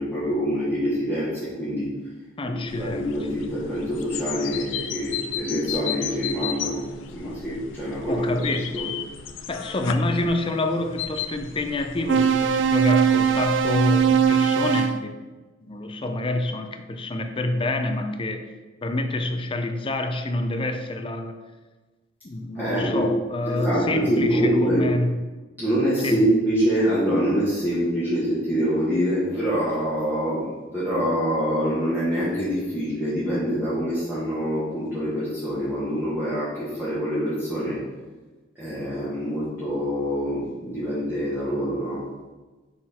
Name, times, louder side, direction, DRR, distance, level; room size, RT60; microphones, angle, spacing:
voice 1, 0.0-1.9 2.4-6.8 7.1-8.5 8.7-8.9 22.6-23.1 23.4-24.9 25.6-37.8 38.6-42.0, equal, 10° right, -11 dB, 1.7 m, -25 dB
voice 2, 2.4-3.1 8.1-8.8 9.5-15.2 15.6-18.5 18.8-21.4 22.2-25.2 26.0-26.2, left 2 dB, 30° left, 6 dB, 0.5 m, -27 dB
sound 1, 2.7-14.3, left 9 dB, 90° left, 0.4 m, -35 dB
sound 2, 12.1-15.0, right 7 dB, 70° right, 0.4 m, -20 dB
5.9 x 4.3 x 4.3 m, 1.2 s
head